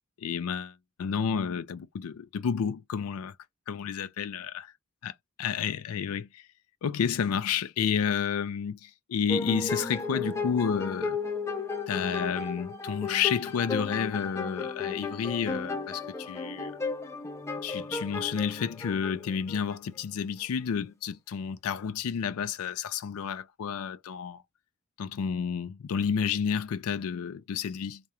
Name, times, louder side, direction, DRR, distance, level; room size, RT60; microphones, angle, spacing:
voice 1, 0.2-3.3 3.7-4.5 5.0-6.4 6.8-11.2 11.9-16.8 17.6-24.4 25.0-28.0, left 7 dB, 90° left, 0.4 m, -30 dB
sound 1, 9.3-19.8, left 4 dB, 15° left, 0.4 m, -34 dB
2.4 x 2.1 x 2.8 m
head